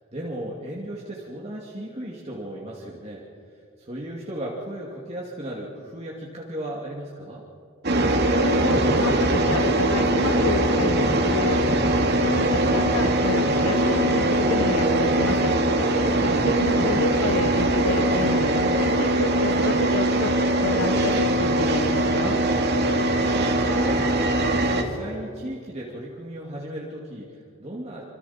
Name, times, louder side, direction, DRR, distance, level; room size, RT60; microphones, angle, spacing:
voice 1, 0.0-7.4 15.8-16.1 22.8-28.0, right 1 dB, 30° right, -4 dB, 2.5 m, -36 dB
sound 1, 7.8-24.8, right 1 dB, 50° right, 2.3 m, -21 dB
voice 2, 8.4-11.6 12.0-15.5 16.2-20.3 20.6-22.4, left 3 dB, 70° left, 8 dB, 0.8 m, -30 dB
27.0 x 26.5 x 4.4 m, 2.5 s
head